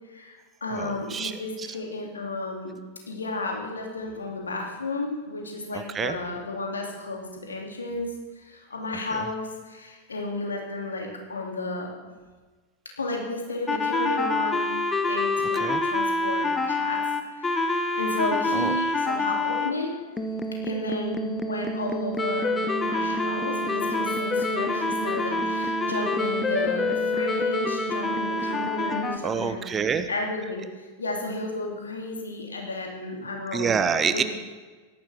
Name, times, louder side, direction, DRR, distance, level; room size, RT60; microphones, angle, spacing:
voice 1, 0.1-2.7 3.1-8.1 8.3-11.9 13.0-14.7 15.1-17.0 17.3-19.9 20.6-22.5 22.8-29.6 30.1-33.7 34.1-34.2, left 2 dB, 75° left, 0 dB, 2.9 m, -33 dB
voice 2, 0.7-1.7 5.7-6.2 9.1-9.3 15.5-15.8 18.5-18.8 29.2-30.1 33.5-34.2, right 6 dB, 20° right, 11 dB, 0.9 m, -27 dB
sound 1, 13.7-19.7 20.2-29.2, left 2 dB, 15° left, 1.1 m, -26 dB
17.0 x 13.5 x 3.6 m, 1.3 s
figure-of-eight pair, 90°, 0 cm